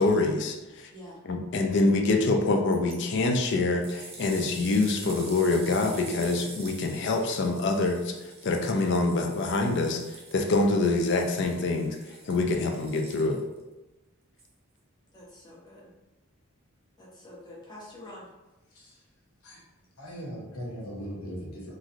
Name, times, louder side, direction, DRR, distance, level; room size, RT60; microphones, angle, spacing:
voice 1, 0.0-0.9 1.2-10.0 10.3-12.0 12.3-13.4, left 3 dB, 55° left, 3 dB, 0.4 m, -25 dB
sound 1, 2.7-3.0 3.4-13.6 14.4-14.5, right 3 dB, 30° right, 0.5 m, -46 dB
voice 2, 15.1-15.9 17.0-18.3, left 1 dB, 20° left, -5 dB, 0.7 m, -46 dB
voice 3, 18.7-19.0 19.4-19.6 20.0-21.8, equal, 80° left, -4 dB, 1.0 m, -39 dB
3.0 x 2.5 x 2.5 m, 1.0 s
head